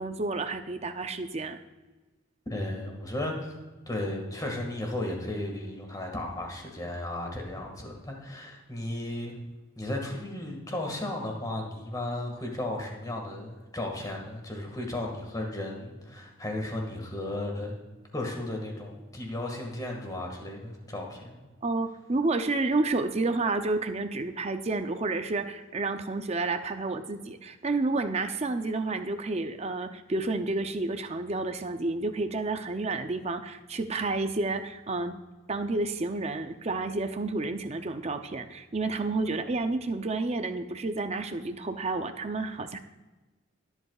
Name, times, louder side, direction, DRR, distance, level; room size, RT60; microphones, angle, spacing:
voice 1, 0.0-1.6 21.6-35.1 35.5-42.8, right 3 dB, 30° right, 8 dB, 0.5 m, -30 dB
voice 2, 2.5-3.6 3.9-9.4 9.8-17.8 18.1-21.5, left 1 dB, 15° left, 1 dB, 1.8 m, -35 dB
21.5 x 8.1 x 2.4 m, 1.2 s
head